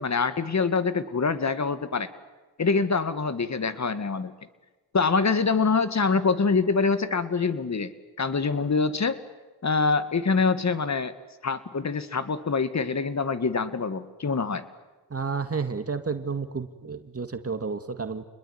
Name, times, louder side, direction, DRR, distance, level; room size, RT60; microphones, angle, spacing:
voice 1, 0.0-2.1 2.6-4.3 4.9-7.9 8.2-9.2 9.6-11.1 11.4-14.7, left 4 dB, 40° left, 12 dB, 2.2 m, -25 dB
voice 2, 15.1-18.2, right 5 dB, 35° right, 8 dB, 2.1 m, -31 dB
29.5 x 21.0 x 9.6 m, 1.2 s
cardioid pair, 60°, 40 cm